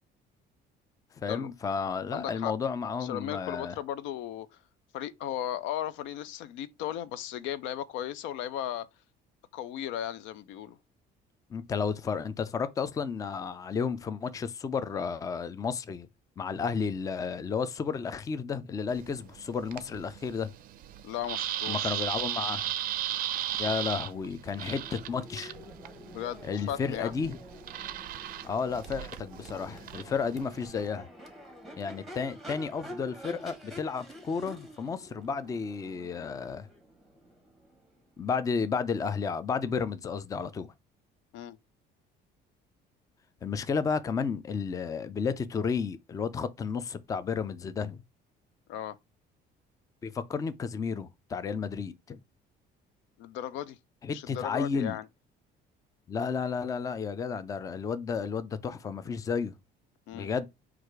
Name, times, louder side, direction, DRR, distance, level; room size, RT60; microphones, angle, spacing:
voice 1, 1.2-3.7 11.5-16.1 16.4-20.5 21.7-22.7 23.6-25.5 26.4-27.4 28.4-31.1 31.8-36.7 38.2-40.7 43.4-48.0 50.0-52.2 54.0-55.0 56.1-59.6 60.1-60.5, left 5 dB, 20° left, 0.3 m, -32 dB
voice 2, 2.1-2.5 3.0-4.5 4.9-8.9 9.5-10.8 21.0-21.9 26.1-27.1 41.3-41.6 48.7-49.0 53.2-53.8 54.1-55.1 60.1-60.3, left 11 dB, 90° left, 0.5 m, -36 dB
sound 1, 18.9-30.9, right 12 dB, 50° right, 0.4 m, -37 dB
Crowd / Race car auto racing / Accelerating revving vroom, 24.5-38.4, equal, ahead, 1.0 m, -48 dB
4.7 x 2.5 x 4.5 m
cardioid pair, 150°, 19 cm